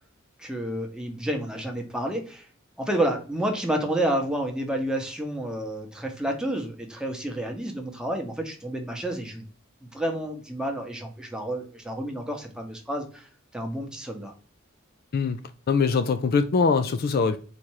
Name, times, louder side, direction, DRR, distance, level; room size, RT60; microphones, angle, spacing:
voice 1, 0.4-2.5 2.8-9.4 9.8-14.3, right 1 dB, 5° right, 0.8 m, -30 dB
voice 2, 15.7-17.4, left 5 dB, 50° left, 0.4 m, -22 dB
4.2 x 2.5 x 4.5 m
head